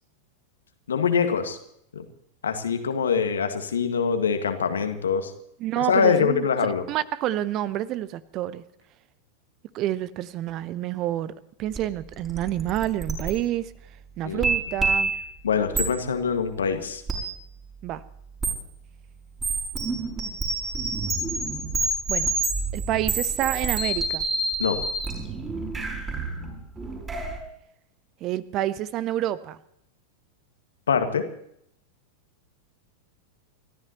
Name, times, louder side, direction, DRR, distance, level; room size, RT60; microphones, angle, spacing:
voice 1, 0.9-1.6 1.9-2.0 2.4-5.3 5.8-6.8 14.2-14.4 15.4-17.0 24.6-24.8 30.9-31.3, left 6 dB, 70° left, 7 dB, 1.8 m, -24 dB
voice 2, 5.6-6.5 6.9-8.6 9.7-13.7 14.2-15.1 17.8-18.0 22.1-22.3 22.7-24.3 28.2-29.6, right 13 dB, 35° right, 18 dB, 0.7 m, -28 dB
sound 1, 11.8-11.9 12.1-13.3 14.4-15.2 15.7-15.9 17.1-17.2 18.4-18.5 19.4-27.4, right 3 dB, 20° right, 4.7 m, -27 dB
29.5 x 14.0 x 3.0 m, 0.72 s
figure-of-eight pair, 90°, 0 cm